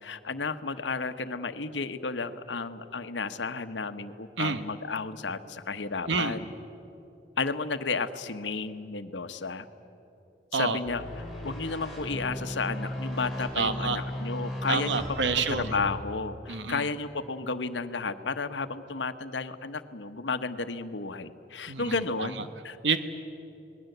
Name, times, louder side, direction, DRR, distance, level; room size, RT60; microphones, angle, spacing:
voice 1, 0.0-6.5 7.4-9.7 10.5-22.8, left 4 dB, 90° left, 10 dB, 1.1 m, -33 dB
sound 1, 10.8-15.9, left 1 dB, ahead, 5.8 m, -36 dB
voice 2, 13.5-14.0 14.7-15.6 16.5-16.8 21.7-22.3 22.8-23.0, right 4 dB, 85° right, 10 dB, 1.2 m, -28 dB
27.5 x 20.0 x 8.0 m, 3.0 s
head